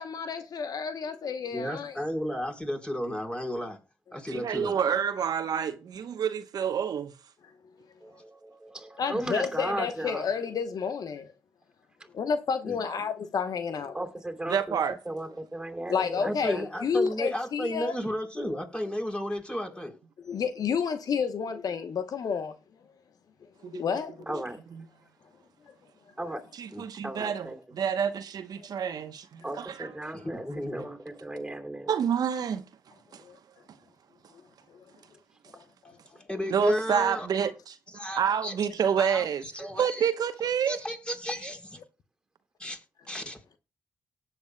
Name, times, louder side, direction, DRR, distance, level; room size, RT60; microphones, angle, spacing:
voice 1, 0.0-2.0 9.0-11.3 12.1-14.0 15.9-17.9 20.2-22.5 23.7-24.4 26.3-26.4 28.6-28.7 33.2-33.4 34.7-34.8 35.5-36.0, left 6 dB, 65° left, 1.0 m, -30 dB
voice 2, 1.5-3.8 4.1-4.8 12.6-12.8 16.2-20.0 26.7-26.8 30.1-30.9 36.3-37.3 37.9-38.5 39.0-40.1 40.7-41.8 42.6-42.8 43.1-43.4, equal, 15° left, 4.1 m, -33 dB
voice 3, 4.3-7.1 14.5-15.0 23.6-23.8 26.6-29.9 31.9-32.6 33.1-33.2 36.5-37.8 38.1-39.4 39.8-40.8, right 7 dB, 70° right, 0.9 m, -28 dB
voice 4, 8.0-10.2 13.9-14.8 15.1-16.6 24.3-24.6 26.2-26.4 27.0-27.6 29.4-30.4 30.7-31.9, right 1 dB, 10° right, 3.0 m, -36 dB
18.0 x 8.2 x 2.2 m
supercardioid pair, 45°, 7 cm